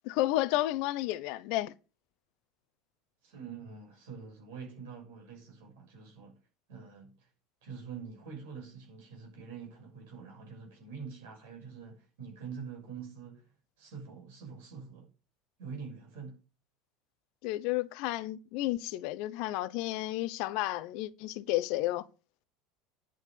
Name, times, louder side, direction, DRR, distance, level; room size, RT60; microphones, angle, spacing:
voice 1, 0.0-1.7 17.4-22.1, left 16 dB, 55° left, 0.8 m, -32 dB
voice 2, 3.2-6.3 6.7-7.3 7.6-13.5 13.8-15.1 15.6-16.4, right 6 dB, 65° right, 6.3 m, -45 dB
11.0 x 7.1 x 6.9 m
figure-of-eight pair, 75°, 0 cm